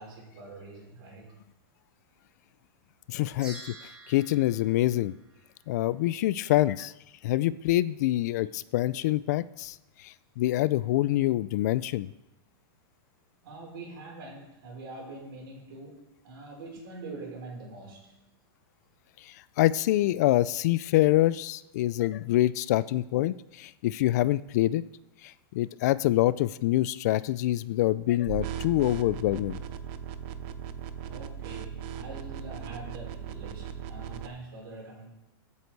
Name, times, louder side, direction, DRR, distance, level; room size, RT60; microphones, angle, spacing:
voice 1, 0.0-1.3 13.4-18.1 31.0-35.1, right 2 dB, 65° right, -1 dB, 5.5 m, -44 dB
voice 2, 3.1-5.1 5.7-6.9 7.2-12.1 19.2-24.8 25.2-29.6, left 15 dB, 45° left, 18 dB, 0.4 m, -26 dB
sound 1, 3.4-5.9, right 2 dB, 10° right, 3.3 m, -48 dB
sound 2, 28.3-34.3, right 9 dB, 35° right, 0.7 m, -38 dB
14.5 x 8.4 x 4.6 m, 0.94 s
supercardioid pair, 170°, 13 cm